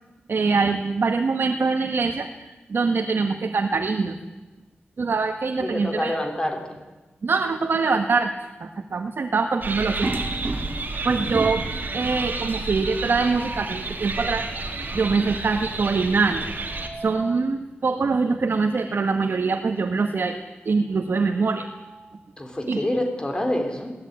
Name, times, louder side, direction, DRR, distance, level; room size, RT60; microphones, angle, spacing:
voice 1, 0.3-4.1 5.0-6.1 7.2-8.3 8.6-10.2 11.0-11.6 11.9-14.5 14.9-16.5 17.0-20.4 20.6-21.7 22.7-22.8, right 4 dB, 70° right, 4 dB, 1.5 m, -23 dB
voice 2, 5.6-6.8 11.1-11.4 22.4-23.9, left 1 dB, 20° left, 4 dB, 3.8 m, -27 dB
sound 1, 9.6-16.9, right 3 dB, 50° right, 3.4 m, -31 dB
sound 2, 10.0-11.0 11.3-11.8 13.0-13.8 16.4-17.5 18.9-19.1 19.4-19.5 21.1-22.3, right 2 dB, 30° right, 2.6 m, -34 dB
22.0 x 17.0 x 9.6 m, 1.1 s
wide cardioid pair, 95°, 4 cm